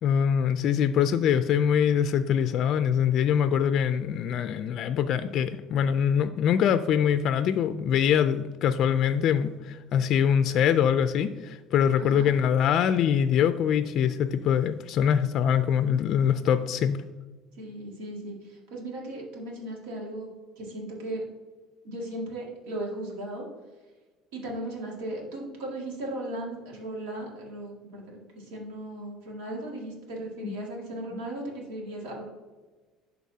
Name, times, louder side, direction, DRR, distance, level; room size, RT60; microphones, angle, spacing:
voice 1, 0.0-17.0 30.4-30.5 31.1-31.2, left 8 dB, 55° left, 11 dB, 0.3 m, -24 dB
voice 2, 12.0-12.3 17.6-20.3 20.6-21.2 21.8-23.5 24.3-32.2, right 1 dB, 90° right, -2 dB, 2.1 m, -37 dB
11.5 x 4.0 x 2.8 m, 1.3 s
cardioid pair, 120°, 0 cm